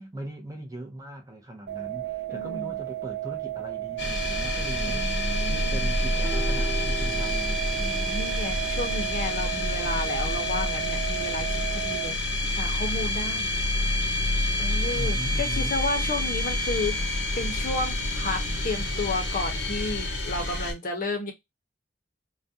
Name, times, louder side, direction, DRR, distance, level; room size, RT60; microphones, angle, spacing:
voice 1, 0.0-7.6 14.9-15.8, right 1 dB, 20° right, 0.5 m, -40 dB
sound 1, 1.7-12.1, right 15 dB, 75° right, 0.3 m, -34 dB
voice 2, 2.3-2.8 4.8-5.9 7.8-12.2 12.5-13.5 14.6-21.3, left 2 dB, 50° left, 0.6 m, -32 dB
sound 2, 4.0-20.7, left 1 dB, 90° left, 0.9 m, -28 dB
sound 3, 6.1-12.6, right 2 dB, 5° right, 1.1 m, -44 dB
2.4 x 2.1 x 2.5 m
head